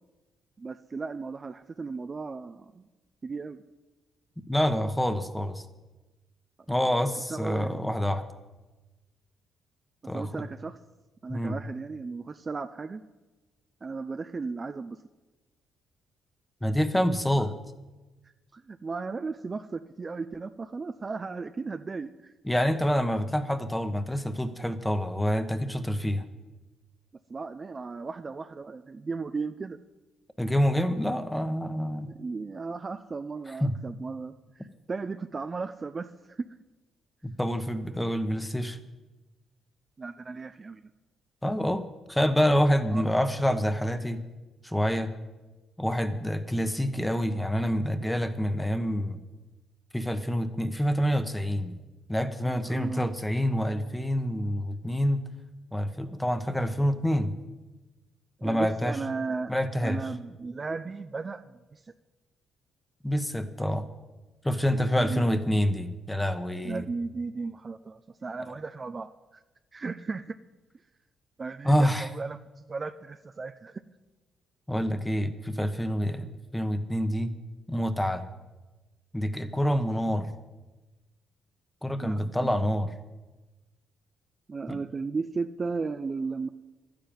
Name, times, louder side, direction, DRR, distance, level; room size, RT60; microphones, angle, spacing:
voice 1, 0.6-2.9 3.2-3.6 7.0-7.9 10.1-10.8 11.2-13.0 13.8-15.0 17.4-17.5 18.5-22.3 27.3-29.8 32.0-36.5 40.0-40.9 42.9-43.2 52.4-53.1 58.4-59.5 59.8-61.9 64.7-65.6 66.6-69.4 69.7-70.4 71.4-72.4 72.7-73.8 82.0-82.7 84.5-86.5, right 4 dB, 30° right, 10 dB, 0.5 m, -35 dB
voice 2, 4.5-5.6 6.7-8.2 10.1-10.4 11.3-11.6 16.6-17.5 22.4-26.2 30.4-32.1 33.6-33.7 37.2-38.8 41.4-41.8 42.1-44.2 44.6-45.1 45.8-49.2 49.9-51.7 52.1-55.2 55.7-57.3 58.4-58.9 59.5-60.0 63.0-63.9 64.4-66.8 71.6-72.1 74.7-77.3 77.7-78.2 79.1-80.3 81.8-82.9 84.7-84.8, equal, 5° left, 10 dB, 1.2 m, -27 dB
11.5 x 10.5 x 8.9 m, 1.2 s
cardioid pair, 90°, 0 cm